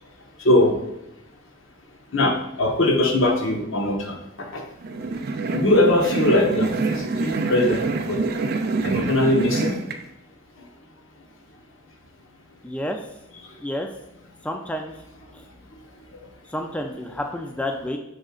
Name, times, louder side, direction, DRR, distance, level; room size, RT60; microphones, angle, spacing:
voice 1, 0.4-0.8 2.1-4.6 5.5-8.2 8.8-9.7 13.5-13.6 16.1-16.2 17.1-17.2, left 1 dB, 70° left, 1 dB, 1.2 m, -21 dB
sound 1, 4.8-10.0, right 3 dB, 50° right, 0.5 m, -26 dB
voice 2, 12.6-13.0 13.6-13.9 14.4-14.9 16.5-18.0, left 1 dB, 5° left, 3 dB, 0.4 m, -29 dB
6.3 x 6.2 x 2.4 m, 0.87 s
head